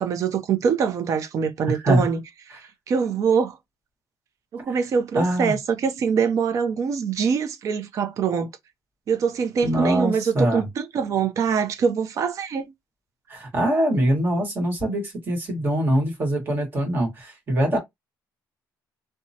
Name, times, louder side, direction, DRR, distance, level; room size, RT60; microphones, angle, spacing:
voice 1, 0.0-2.2 2.5-2.6 2.9-3.6 4.5-8.5 9.1-12.7, right 6 dB, 45° right, 0.6 m, -24 dB
voice 2, 1.7-2.0 2.5-2.6 5.1-5.5 9.6-10.7 13.3-17.8, right 1 dB, 25° right, 1.6 m, -23 dB
2.8 x 2.2 x 2.8 m
cardioid pair, 170°, 8 cm